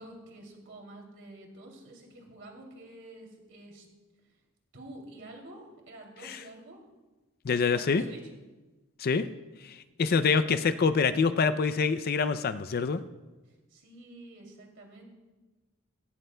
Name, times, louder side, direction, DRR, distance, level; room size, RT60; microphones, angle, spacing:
voice 1, 0.0-3.9 4.7-6.8 7.5-8.2 13.5-15.0, right 1 dB, 60° right, 1 dB, 2.8 m, -48 dB
voice 2, 7.4-8.0 9.0-9.3 9.6-13.0, left 5 dB, 45° left, 12 dB, 0.4 m, -26 dB
16.5 x 16.5 x 2.2 m, 1.2 s
head